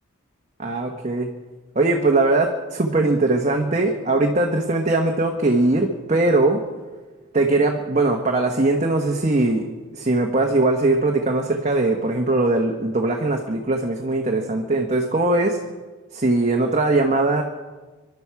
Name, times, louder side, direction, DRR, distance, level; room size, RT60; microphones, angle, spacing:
voice 1, 0.6-1.3 1.7-6.6 7.3-9.7 9.9-15.6 16.1-17.4, right 2 dB, 35° right, 1 dB, 1.2 m, -20 dB
25.0 x 12.0 x 4.8 m, 1.3 s
head